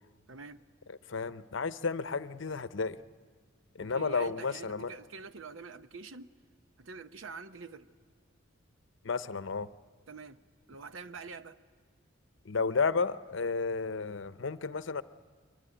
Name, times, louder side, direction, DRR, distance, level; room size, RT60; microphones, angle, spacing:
voice 1, 0.3-0.6 3.8-6.3 6.8-7.9 10.1-10.4 10.7-11.6, right 4 dB, 80° right, 12 dB, 0.9 m, -46 dB
voice 2, 0.9-3.0 3.7-4.9 9.0-9.7 12.4-15.0, left 4 dB, 70° left, 14 dB, 0.7 m, -32 dB
23.5 x 23.0 x 9.9 m, 1.5 s
head